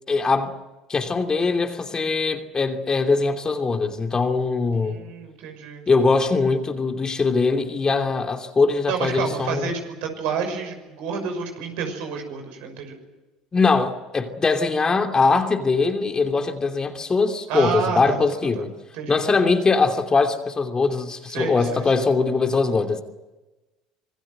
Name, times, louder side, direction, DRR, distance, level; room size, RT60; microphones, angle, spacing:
voice 1, 0.1-0.6 0.9-5.0 5.9-9.7 13.5-18.7 19.1-23.0, left 4 dB, 25° left, 2.9 m, -21 dB
voice 2, 4.7-5.8 8.9-13.0 17.5-18.3 18.6-18.7 18.9-19.4 21.3-22.0, right 6 dB, 65° right, 6.2 m, -29 dB
26.5 x 21.0 x 7.9 m
hypercardioid pair, 65°, 3 cm